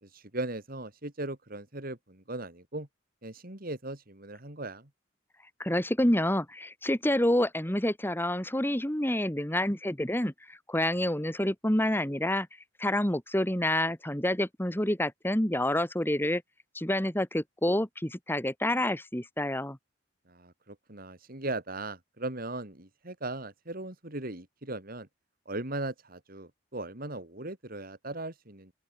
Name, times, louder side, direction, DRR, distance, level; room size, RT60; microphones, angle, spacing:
voice 1, 0.0-2.9 3.2-4.9 20.3-25.1 25.4-28.7, right 2 dB, 50° right, 3.4 m, -38 dB
voice 2, 5.6-12.5 12.8-16.4 16.7-19.8, left 1 dB, 10° left, 2.2 m, -28 dB
open air
head